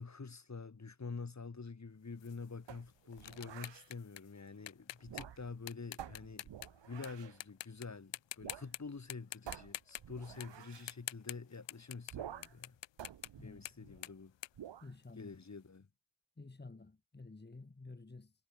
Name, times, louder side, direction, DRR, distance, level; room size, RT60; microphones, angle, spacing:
voice 1, 0.0-6.5 6.9-12.8 13.4-14.3 15.2-15.9, left 4 dB, 40° left, 3.1 m, -47 dB
sound 1, 2.2-7.1 7.4-7.9 8.1-8.8 9.1-15.4, left 13 dB, 75° left, 0.7 m, -47 dB
sound 2, 2.7-3.9 5.0-5.6 6.0-7.4 8.4-8.7 9.0-9.1 9.5-10.9 12.1-12.6 13.0-14.1 14.5-14.9, right 10 dB, 70° right, 1.2 m, -50 dB
voice 2, 14.8-15.3 16.4-18.3, left 3 dB, 25° left, 1.9 m, -51 dB
cardioid pair, 60°, 44 cm